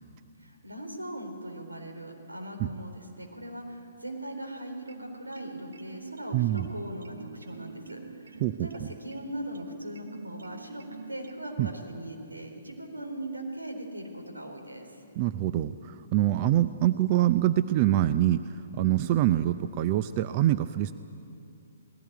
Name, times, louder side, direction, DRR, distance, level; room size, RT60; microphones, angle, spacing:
voice 1, 0.4-10.8 11.1-14.9, right 1 dB, 85° right, 3 dB, 4.2 m, -40 dB
sound 1, 4.8-11.4, right 5 dB, 70° right, 1.1 m, -47 dB
voice 2, 6.3-6.7 8.4-8.7 11.6-11.7 15.2-18.4 18.8-20.9, right 13 dB, 35° right, 12 dB, 0.5 m, -25 dB
19.5 x 16.5 x 9.8 m, 2.6 s
figure-of-eight pair, 125°, 0 cm